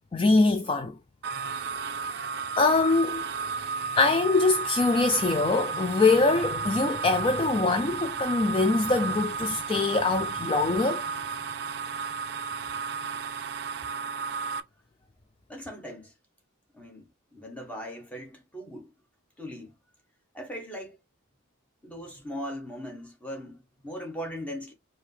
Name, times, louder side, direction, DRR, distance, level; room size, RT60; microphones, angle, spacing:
voice 1, 0.1-0.9 2.2-2.3 2.6-3.2 4.0-11.0, left 3 dB, 25° left, 0.3 m, -23 dB
sound 1, 1.2-14.6, right 5 dB, 50° right, 0.4 m, -33 dB
voice 2, 15.5-16.1 16.7-18.9 19.4-19.7 20.3-21.0 21.8-24.7, equal, 5° left, 1.2 m, -39 dB
4.6 x 2.8 x 3.2 m
head